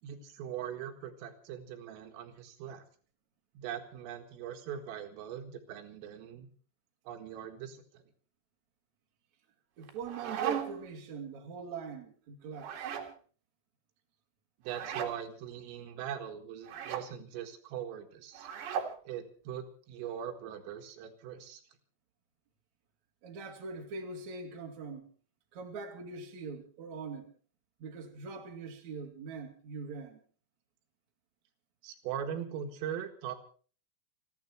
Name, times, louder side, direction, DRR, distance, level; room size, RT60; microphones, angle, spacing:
voice 1, 0.0-2.9 3.6-6.5 7.1-8.0 14.6-18.5 19.1-21.6 31.8-33.4, right 9 dB, 85° right, 4.4 m, -41 dB
voice 2, 9.8-12.9 23.2-25.1 25.5-27.3 27.8-30.2, right 5 dB, 40° right, 3.4 m, -42 dB
sound 1, 9.8-10.9 12.5-13.1 14.7-15.2 16.6-17.1 18.3-19.0, right 8 dB, 65° right, 4.0 m, -37 dB
30.0 x 11.0 x 4.5 m
omnidirectional pair, 5.8 m